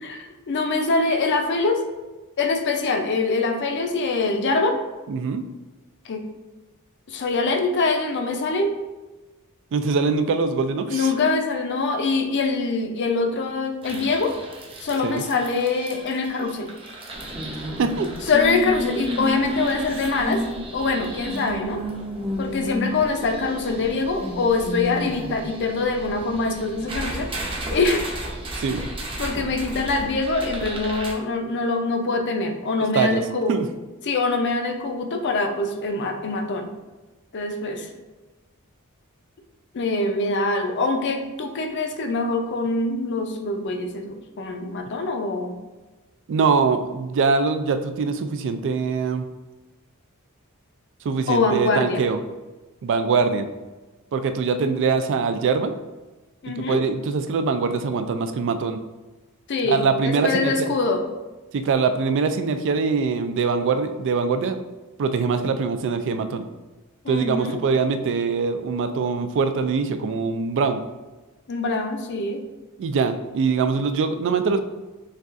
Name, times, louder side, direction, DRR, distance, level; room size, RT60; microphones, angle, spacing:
voice 1, 0.5-1.8 2.4-4.8 6.0-6.2 7.1-8.7 10.9-14.3 14.8-16.7 18.3-20.4 20.7-21.8 22.4-27.3 27.7-28.1 29.2-33.6 34.0-36.7 37.3-37.9 39.7-45.6 51.3-52.0 56.4-56.8 59.5-61.0 67.0-67.6 71.5-72.4, left 3 dB, 50° left, 4 dB, 0.5 m, -24 dB
voice 2, 5.1-5.4 9.7-11.1 15.0-15.2 17.6-18.1 28.6-28.8 32.9-33.2 33.5-33.7 46.3-49.3 51.0-52.2 52.8-53.5 54.1-55.7 56.6-58.8 59.7-60.7 61.5-64.6 65.0-66.5 67.1-70.8 72.8-74.6, right 4 dB, 55° right, 9 dB, 0.3 m, -23 dB
sound 1, 13.8-31.1, equal, 25° right, 0.7 m, -32 dB
6.5 x 2.4 x 2.5 m, 1.2 s
head